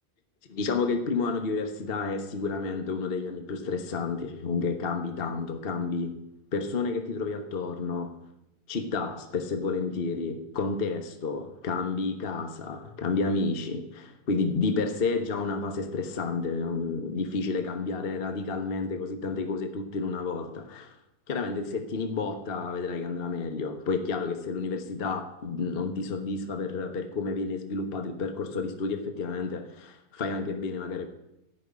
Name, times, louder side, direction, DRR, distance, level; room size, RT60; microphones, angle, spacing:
voice 1, 0.5-6.2 6.5-8.2 8.7-21.0 21.3-31.1, left 4 dB, 40° left, 1.2 m, -30 dB
14.5 x 6.6 x 9.5 m
omnidirectional pair, 1.8 m